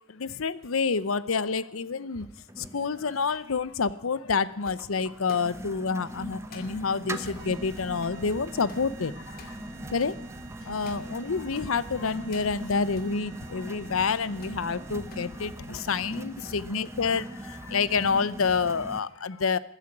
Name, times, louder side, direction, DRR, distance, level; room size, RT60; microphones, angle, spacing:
voice 1, 0.1-2.3 2.6-9.6 9.9-10.2 10.6-19.6, left 5 dB, 90° left, 17 dB, 0.7 m, -28 dB
sound 1, 1.1-11.7 12.1-13.1 13.6-17.0 17.4-17.7, left 4 dB, 45° left, 2.3 m, -55 dB
sound 2, 2.1-19.0, right 1 dB, 15° right, 0.8 m, -41 dB
sound 3, 7.4-16.8, right 4 dB, 50° right, 1.1 m, -49 dB
14.0 x 10.0 x 9.8 m, 0.80 s
head